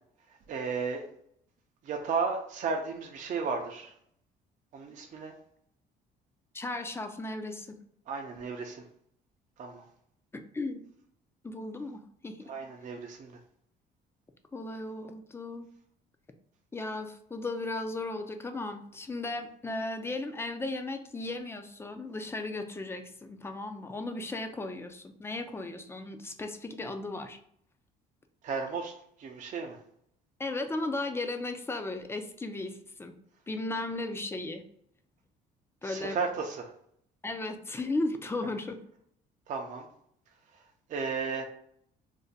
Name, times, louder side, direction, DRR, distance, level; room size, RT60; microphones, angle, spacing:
voice 1, 0.5-1.0 1.8-3.9 4.7-5.3 8.1-8.8 9.6-9.8 12.5-13.4 28.4-28.9 29.2-29.8 35.8-36.7 39.5-39.9 40.9-41.4, right 5 dB, 50° right, 2 dB, 0.5 m, -34 dB
voice 2, 6.5-7.8 10.3-10.8 11.4-12.5 14.5-15.7 16.7-27.4 30.4-33.1 33.5-34.6 35.8-36.2 37.2-38.8, left 2 dB, 15° left, 7 dB, 0.4 m, -36 dB
2.6 x 2.1 x 3.9 m, 0.69 s
cardioid pair, 110°, 17 cm